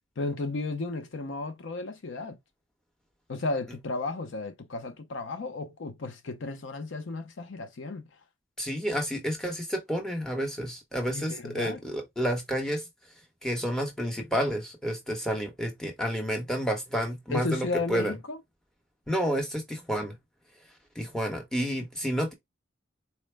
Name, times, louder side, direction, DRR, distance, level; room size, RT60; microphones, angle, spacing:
voice 1, 0.2-2.4 3.3-8.1 11.1-11.8 17.3-18.4, left 3 dB, 65° left, 0.6 m, -34 dB
voice 2, 8.6-12.8 13.4-18.1 19.1-20.1 21.0-22.3, equal, 5° left, 0.9 m, -30 dB
4.3 x 2.1 x 3.2 m
head